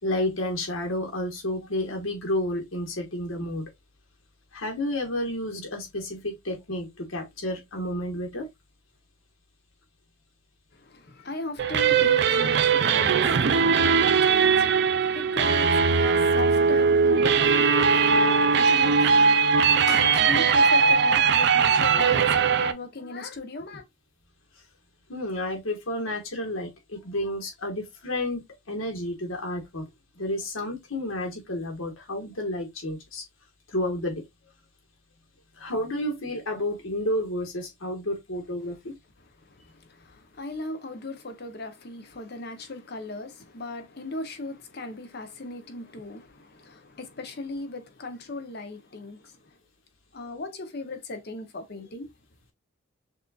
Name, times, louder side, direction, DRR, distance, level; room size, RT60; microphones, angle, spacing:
voice 1, 0.0-3.7 4.5-8.5 25.1-29.9 30.1-33.2 33.7-34.2 35.6-38.9, left 1 dB, 80° left, 1.6 m, -31 dB
voice 2, 10.7-23.8 39.2-49.6 50.1-52.1, left 3 dB, 50° left, 0.9 m, -38 dB
sound 1, 11.6-22.7, right 5 dB, 55° right, 0.4 m, -20 dB
6.4 x 2.6 x 2.3 m
head